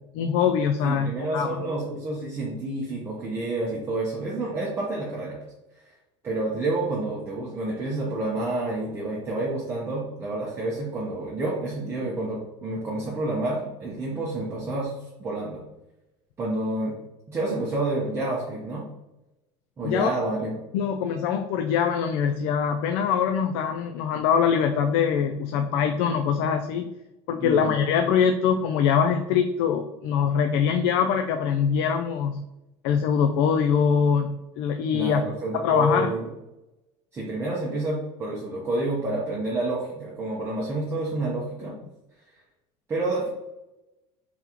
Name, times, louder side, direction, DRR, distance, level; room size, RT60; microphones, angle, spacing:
voice 1, 0.2-1.6 19.8-20.1 20.7-26.9 27.3-32.4 32.8-35.2 35.5-36.1, left 7 dB, 80° left, 6 dB, 0.4 m, -23 dB
voice 2, 0.8-5.4 6.2-14.9 15.2-15.6 16.4-16.9 17.3-18.9 19.8-20.5 27.4-27.8 34.9-36.3 37.1-41.7 42.9-43.3, right 2 dB, 20° right, -4 dB, 0.6 m, -29 dB
3.6 x 3.6 x 2.9 m, 0.95 s
cardioid pair, 165°, 13 cm